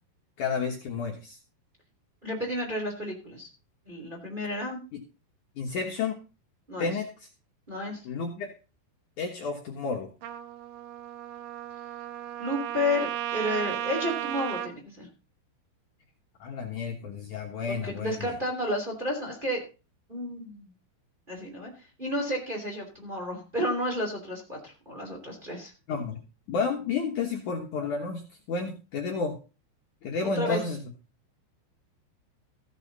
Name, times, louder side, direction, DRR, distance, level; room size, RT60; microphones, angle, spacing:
voice 1, 0.4-1.4 5.6-6.2 6.8-7.3 8.0-8.5 9.2-10.1 16.4-18.3 25.9-26.2 26.5-28.2 28.5-29.3 30.0-30.8, left 5 dB, 90° left, 1 dB, 1.7 m, -31 dB
voice 2, 2.2-3.5 3.9-4.8 6.7-6.9 7.7-8.0 12.4-15.1 17.7-19.6 20.1-20.7 21.3-21.7 22.0-25.7 30.2-30.6, left 1 dB, 15° right, 0 dB, 2.2 m, -31 dB
Trumpet, 10.2-14.7, right 11 dB, 80° right, 3.5 m, -34 dB
15.0 x 9.1 x 4.1 m, 0.33 s
omnidirectional pair, 5.8 m